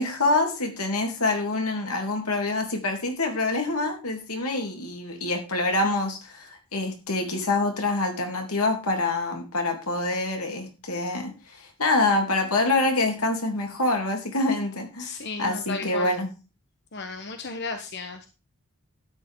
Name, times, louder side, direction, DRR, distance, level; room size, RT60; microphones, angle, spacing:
voice 1, 0.0-11.3 11.6-15.1 15.4-16.3, left 2 dB, 85° left, 3 dB, 3.3 m, -26 dB
voice 2, 15.0-16.2 16.9-18.3, left 3 dB, 50° left, 6 dB, 1.2 m, -34 dB
12.5 x 9.3 x 3.8 m, 0.31 s
head